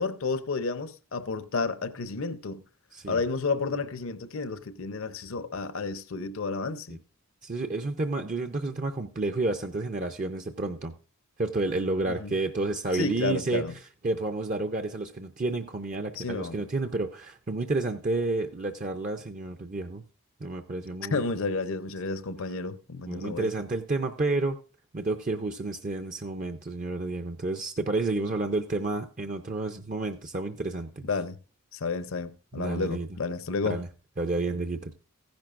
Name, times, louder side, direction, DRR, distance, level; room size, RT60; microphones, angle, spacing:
voice 1, 0.0-2.6 3.1-7.0 12.1-12.4 12.9-13.7 16.2-16.6 21.1-23.5 31.0-31.4 31.7-33.8, left 4 dB, 65° left, 0.7 m, -31 dB
voice 2, 2.9-3.2 6.9-7.0 7.4-10.9 11.4-13.6 14.0-20.0 20.4-21.2 23.1-24.6 24.9-31.1 32.5-33.1 33.6-33.9 34.2-34.9, right 2 dB, 35° right, 0.5 m, -30 dB
15.0 x 10.5 x 2.5 m
head